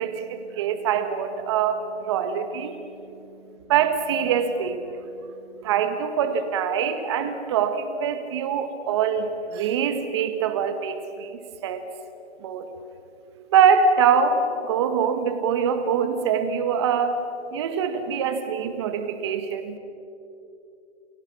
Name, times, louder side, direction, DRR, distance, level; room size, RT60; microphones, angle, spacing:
voice 1, 0.0-2.8 3.7-4.8 5.6-11.9 12.4-12.7 13.5-19.8, right 7 dB, 25° right, 9 dB, 1.6 m, -24 dB
29.0 x 27.5 x 6.0 m, 2.7 s
hypercardioid pair, 160°, 36 cm